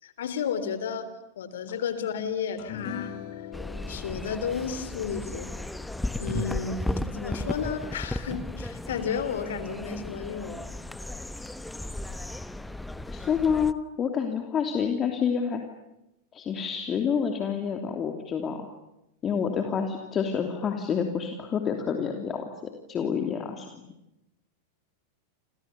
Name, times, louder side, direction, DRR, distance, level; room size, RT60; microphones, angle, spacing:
voice 1, 0.0-1.1 1.4-3.2 3.9-5.5 6.2-10.7, left 7 dB, 60° left, 12 dB, 3.6 m, -32 dB
sound 1, 2.6-9.1, left 10 dB, 45° left, 2.3 m, -43 dB
sound 2, 3.5-13.7, left 1 dB, 5° left, 1.2 m, -35 dB
voice 2, 13.1-15.6 16.3-18.7 19.2-22.4 22.9-23.7, left 7 dB, 25° left, 4 dB, 3.0 m, -28 dB
30.0 x 27.5 x 7.0 m, 0.89 s
figure-of-eight pair, 90°, 0 cm